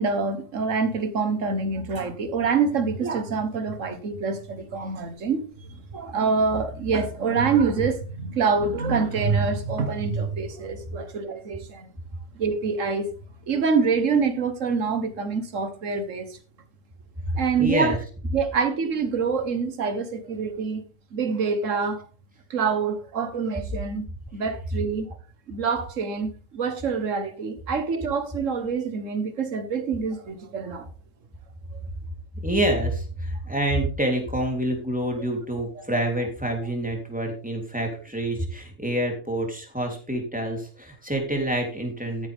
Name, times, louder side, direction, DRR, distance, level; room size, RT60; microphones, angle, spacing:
voice 1, 0.0-11.9 12.4-13.1 13.5-16.4 17.4-18.0 18.3-20.8 21.1-22.1 22.5-24.1 24.3-25.2 25.5-30.9 35.8-35.9, right 5 dB, 75° right, 1.7 m, -26 dB
voice 2, 17.6-18.0 32.4-42.3, right 1 dB, 5° right, 3.5 m, -27 dB
13.5 x 10.5 x 3.6 m
omnidirectional pair, 1.3 m